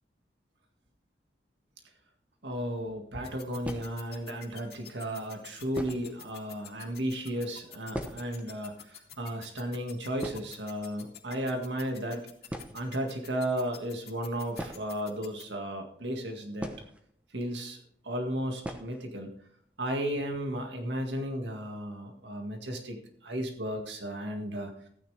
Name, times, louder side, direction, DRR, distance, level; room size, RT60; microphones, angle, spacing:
voice 1, 2.4-12.2 12.7-16.7 17.3-19.3 19.8-24.7, equal, 85° right, 3 dB, 1.9 m, -34 dB
sound 1, 2.7-2.8 3.6-4.3 5.1-5.2 5.7-6.3 6.5-6.6 6.9-7.1 7.4-8.5 8.8-8.9 9.2-9.4 9.8-9.9 10.2-11.1 12.0-12.1 12.5-13.0 14.5-15.6 16.6-17.4 17.7-17.8 18.6-19.1 19.4-19.5 19.9-20.0 20.4-20.7, equal, 5° right, 0.9 m, -40 dB
sound 2, 3.2-15.4, left 11 dB, 60° left, 2.3 m, -48 dB
14.5 x 9.8 x 3.4 m, 0.65 s
head